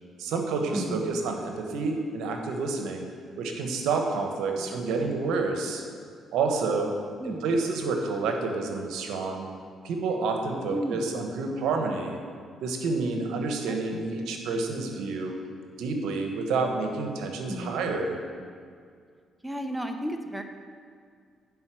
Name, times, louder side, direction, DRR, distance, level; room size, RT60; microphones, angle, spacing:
voice 1, 0.2-3.1 3.4-5.8 6.3-6.9 7.2-9.5 9.8-12.2 12.6-15.3 15.8-18.2, right 4 dB, 85° right, 3 dB, 1.1 m, -29 dB
voice 2, 0.7-1.2 4.6-5.1 7.2-7.4 10.7-11.1 13.7-14.1 17.5-17.9 19.4-20.4, equal, 5° right, 5 dB, 0.7 m, -34 dB
9.6 x 5.1 x 6.1 m, 2.1 s
cardioid pair, 90°, 0 cm